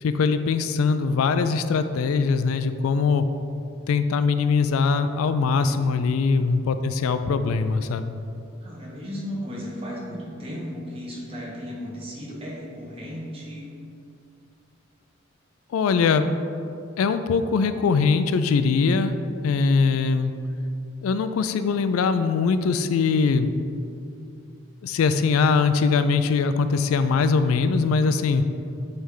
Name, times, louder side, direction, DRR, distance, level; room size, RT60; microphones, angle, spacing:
voice 1, 0.0-3.3 3.9-8.1 15.7-16.3 17.0-19.2 19.4-20.3 21.0-23.5 24.8-28.4, left 5 dB, 90° left, 10 dB, 0.3 m, -22 dB
voice 2, 8.6-13.7, equal, 25° right, -5 dB, 1.1 m, -35 dB
8.1 x 3.3 x 3.8 m, 2.5 s
head